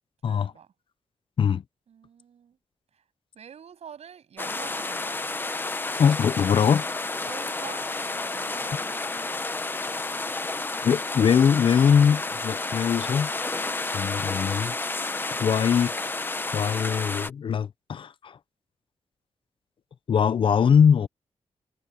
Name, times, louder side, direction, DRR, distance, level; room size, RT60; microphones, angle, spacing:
voice 1, 0.2-0.7 1.9-2.6 2.9-3.0 3.3-5.2 7.2-7.9 8.1-9.0, right 8 dB, 70° right, 7.5 m, -46 dB
sound 1, 4.4-17.3, left 3 dB, 20° left, 0.7 m, -31 dB
voice 2, 6.0-6.8 10.8-13.3 13.9-14.7 15.4-15.9 16.5-18.4 20.1-21.1, left 7 dB, 50° left, 0.5 m, -21 dB
wide cardioid pair, 150°, 11 cm